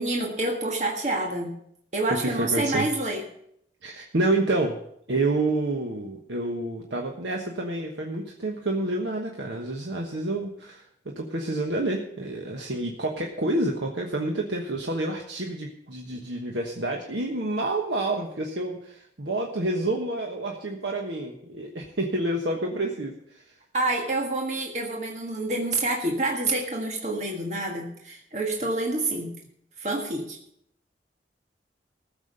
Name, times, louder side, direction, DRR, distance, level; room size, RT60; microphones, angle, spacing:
voice 1, 0.0-1.5 1.9-3.2 23.7-29.3 29.8-30.4, right 2 dB, 40° right, 0 dB, 1.6 m, -27 dB
voice 2, 2.2-2.9 3.8-4.8 5.1-10.9 11.1-23.5, right 2 dB, 85° right, 1 dB, 1.3 m, -28 dB
15.0 x 7.2 x 6.8 m, 0.72 s
head